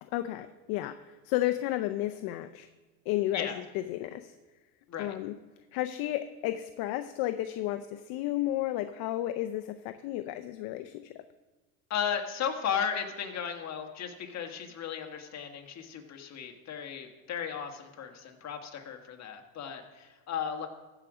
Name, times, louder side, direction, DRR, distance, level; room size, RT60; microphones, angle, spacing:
voice 1, 0.0-2.7 3.1-4.4 5.0-5.4 5.7-11.2, left 14 dB, 60° left, 9 dB, 0.6 m, -32 dB
voice 2, 11.9-20.7, left 8 dB, 40° left, 4 dB, 1.5 m, -35 dB
14.5 x 5.0 x 6.1 m, 1.3 s
supercardioid pair, 110°, 42 cm